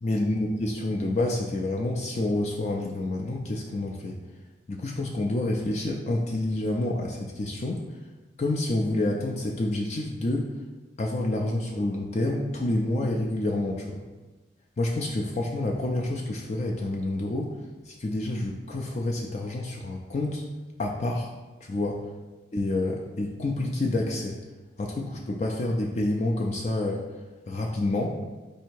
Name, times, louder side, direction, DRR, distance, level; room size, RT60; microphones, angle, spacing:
voice 1, 0.0-4.2 4.7-7.8 8.4-10.5 11.0-14.0 14.8-17.5 17.9-20.4 20.8-21.3 21.6-22.0 22.5-24.4 24.8-27.0 27.5-28.2, left 2 dB, 35° left, -1 dB, 0.4 m, -28 dB
4.2 x 2.8 x 4.5 m, 1.2 s
head